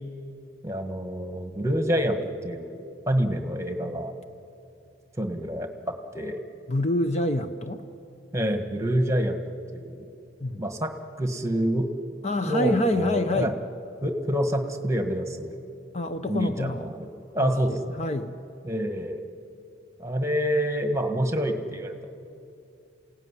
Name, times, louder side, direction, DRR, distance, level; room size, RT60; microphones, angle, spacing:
voice 1, 0.6-2.8 3.1-4.1 5.2-6.4 8.3-9.4 9.7-10.1 10.6-10.9 11.2-11.9 12.4-13.5 14.0-15.6 16.3-17.1 17.3-18.1 18.6-19.2 20.0-22.1, equal, 15° right, 6 dB, 1.6 m, -27 dB
voice 2, 6.7-7.8 10.4-10.7 12.2-13.5 15.9-16.9 17.4-18.3, left 1 dB, 35° left, 8 dB, 0.8 m, -27 dB
27.5 x 17.5 x 9.9 m, 2.7 s
head